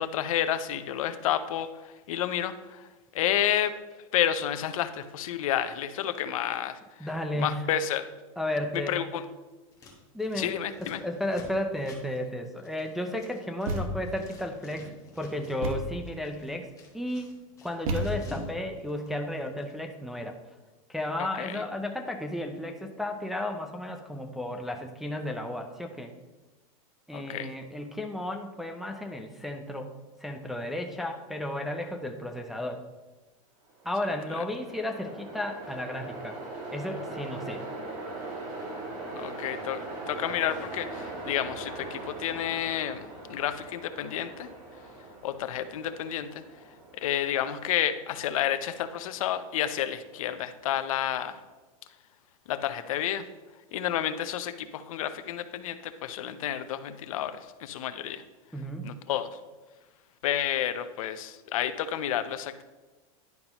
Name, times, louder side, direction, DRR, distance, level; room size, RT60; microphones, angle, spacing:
voice 1, 0.0-3.7 4.1-7.1 7.3-8.1 8.7-9.2 10.4-11.0 21.2-21.6 27.1-27.5 34.3-34.4 39.1-44.5 45.2-46.4 47.0-51.4 52.5-53.3 53.7-58.2 58.8-59.3 60.2-62.6, left 10 dB, 75° left, 12 dB, 0.6 m, -30 dB
voice 2, 7.0-7.6 8.4-8.9 10.1-16.7 16.9-20.4 20.9-26.1 27.1-29.9 30.2-32.8 33.8-36.4 36.7-37.6 58.5-58.9, left 1 dB, ahead, 3 dB, 0.3 m, -33 dB
Scissors, 9.7-13.8 14.1-15.7 16.0-18.5 18.8-19.7, left 2 dB, 20° left, 1.2 m, -49 dB
Thump thud, 13.7-14.2 15.6-16.1 17.9-18.5, right 1 dB, 75° right, 1.1 m, -32 dB
Train, 33.7-50.9, right 2 dB, 40° right, 2.1 m, -41 dB
10.5 x 5.3 x 2.9 m, 1.2 s
supercardioid pair, 155°, 18 cm